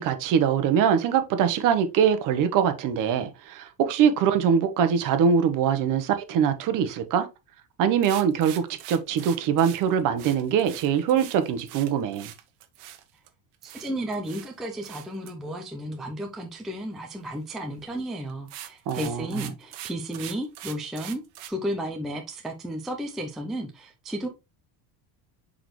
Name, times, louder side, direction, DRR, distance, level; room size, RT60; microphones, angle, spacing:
voice 1, 0.0-7.2 7.8-12.3 18.9-19.5, right 8 dB, 45° right, 1.0 m, -23 dB
sound 1, 8.0-13.3 13.6-14.5 14.8-15.3 17.8-18.0 18.3-21.5, right 13 dB, 70° right, 1.2 m, -42 dB
voice 2, 13.6-21.2 21.5-24.3, right 1 dB, ahead, 0.4 m, -33 dB
6.3 x 4.9 x 3.1 m
cardioid pair, 165°, 46 cm